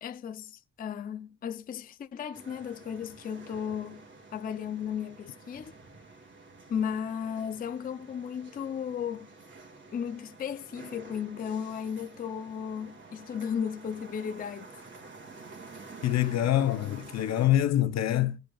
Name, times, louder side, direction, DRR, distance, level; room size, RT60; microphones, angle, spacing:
voice 1, 0.0-4.1 4.3-5.8 6.7-9.3 9.9-14.8, left 8 dB, 30° left, 0.4 m, -35 dB
sound 1, 2.3-17.5, right 3 dB, 40° right, 2.0 m, -50 dB
voice 2, 16.0-18.4, left 12 dB, 60° left, 0.7 m, -25 dB
20.0 x 7.5 x 2.3 m
cardioid pair, 155°, 30 cm